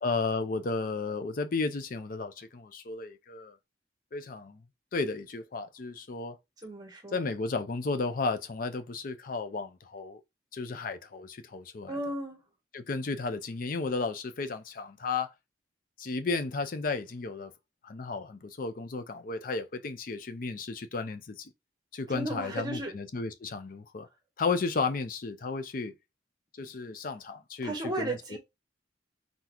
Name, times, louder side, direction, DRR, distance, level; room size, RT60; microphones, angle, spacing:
voice 1, 0.0-3.6 4.1-4.6 4.9-6.4 7.1-10.2 10.5-12.0 12.7-15.3 16.0-17.5 17.8-21.5 21.9-24.1 24.4-25.9 26.5-28.4, left 4 dB, 50° left, 0.5 m, -33 dB
voice 2, 6.6-7.2 11.9-12.5 22.1-22.9 27.6-28.4, right 1 dB, 25° right, 1.2 m, -35 dB
3.9 x 3.6 x 2.9 m
head